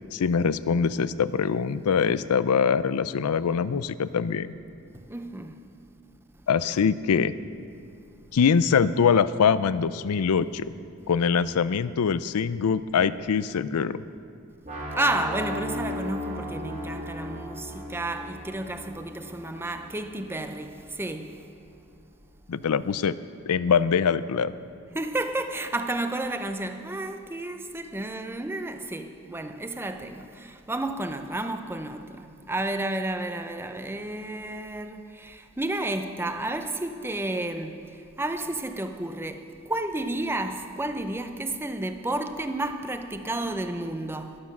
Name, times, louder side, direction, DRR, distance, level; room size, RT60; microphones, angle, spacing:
voice 1, 0.1-4.5 6.5-7.4 8.3-10.7 11.1-14.0 22.5-23.2 23.5-24.5, left 6 dB, 80° left, 0.4 m, -23 dB
voice 2, 4.9-5.6 14.9-21.4 24.9-44.4, right 2 dB, 10° right, 0.6 m, -31 dB
sound 1, 14.6-20.6, equal, 35° right, 2.6 m, -36 dB
13.0 x 12.0 x 6.0 m
head